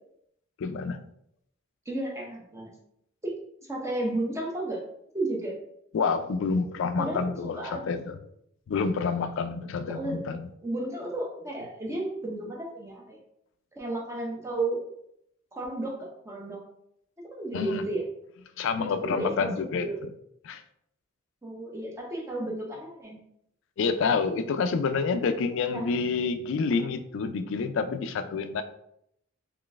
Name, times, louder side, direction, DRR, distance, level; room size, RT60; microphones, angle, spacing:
voice 1, 0.6-1.0 5.9-8.2 8.7-10.5 17.5-17.8 18.6-19.9 20.4-20.6 23.8-28.6, left 5 dB, 60° left, 9 dB, 0.3 m, -28 dB
voice 2, 1.9-2.7 3.2-3.3 3.6-4.8 5.1-5.6 7.0-7.9 9.9-10.2 10.6-13.2 13.7-14.8 15.5-16.6 17.3-18.0 18.8-20.0 21.4-23.2 25.7-25.9, right 2 dB, 15° right, -1 dB, 0.6 m, -33 dB
3.8 x 3.0 x 2.3 m, 0.74 s
head